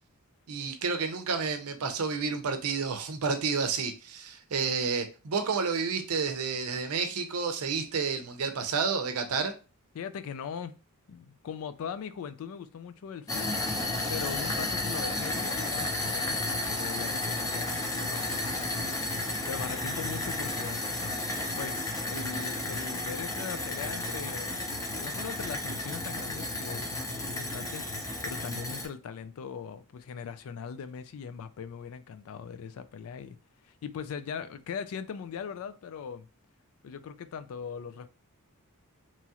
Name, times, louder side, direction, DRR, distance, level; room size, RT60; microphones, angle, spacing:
voice 1, 0.5-9.5, right 5 dB, 75° right, 0.6 m, -30 dB
voice 2, 9.9-10.8 11.1-13.5 14.1-20.9 21.5-24.6 24.9-33.4 33.6-36.3 36.8-38.1, left 7 dB, 65° left, 0.3 m, -40 dB
sound 1, 13.3-28.9, left 2 dB, 15° left, 0.5 m, -32 dB
3.0 x 2.4 x 2.8 m
head